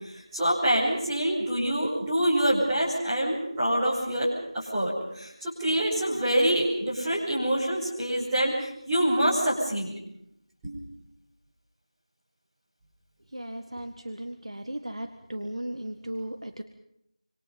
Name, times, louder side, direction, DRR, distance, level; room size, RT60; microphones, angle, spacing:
voice 1, 0.0-9.9 10.6-10.8, right 1 dB, 5° right, -12 dB, 5.4 m, -26 dB
voice 2, 13.3-16.6, right 1 dB, 70° right, 7 dB, 1.7 m, -36 dB
26.5 x 26.0 x 5.6 m, 0.76 s
figure-of-eight pair, 170°, 3 cm